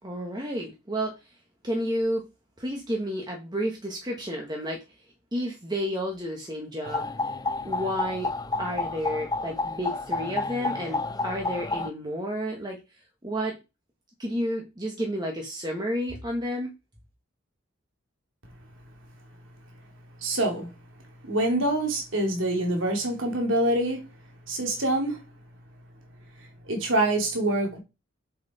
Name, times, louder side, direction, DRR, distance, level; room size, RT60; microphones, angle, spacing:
voice 1, 0.0-1.1 1.6-2.2 2.6-4.8 5.3-7.1 7.6-8.3 8.6-12.8 13.2-13.6 14.2-16.7, equal, 20° right, 1.8 m, -31 dB
sound 1, 6.8-11.9, left 3 dB, 20° left, 0.5 m, -30 dB
voice 2, 20.2-20.7 21.3-24.1 24.5-25.2 26.6-27.8, right 1 dB, 75° right, 3.2 m, -25 dB
7.9 x 7.5 x 4.4 m
head